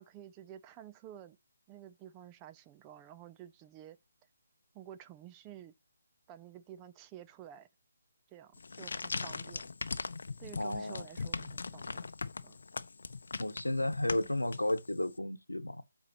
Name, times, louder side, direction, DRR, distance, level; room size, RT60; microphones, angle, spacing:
voice 1, 0.0-1.4 1.7-4.0 4.7-5.7 6.3-7.7 8.3-9.7 10.4-12.1 12.4-12.6, right 11 dB, 20° right, 0.4 m, -51 dB
sound 1, 8.5-15.1, left 4 dB, 60° left, 0.6 m, -40 dB
voice 2, 10.6-11.0 13.4-15.8, left 1 dB, 90° left, 0.9 m, -33 dB
13.0 x 4.3 x 2.9 m
figure-of-eight pair, 150°, 0 cm